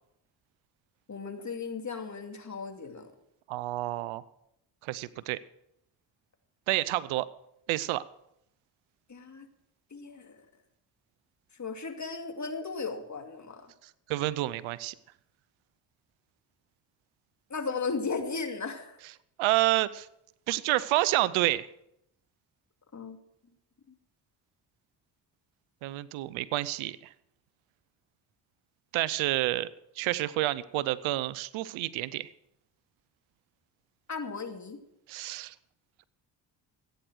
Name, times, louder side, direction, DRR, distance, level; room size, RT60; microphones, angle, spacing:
voice 1, 1.1-3.1 9.1-9.4 9.9-10.4 11.6-13.7 17.5-19.0 22.9-23.2 34.1-34.8, left 4 dB, 35° left, 5 dB, 2.5 m, -36 dB
voice 2, 3.5-4.2 4.8-5.4 6.7-7.3 7.7-8.0 14.1-14.9 19.4-20.1 20.5-21.7 25.8-27.0 28.9-29.7 30.0-32.3 35.1-35.5, right 17 dB, 80° right, 19 dB, 0.7 m, -29 dB
15.5 x 9.4 x 6.3 m, 0.78 s
hypercardioid pair, 50°, 47 cm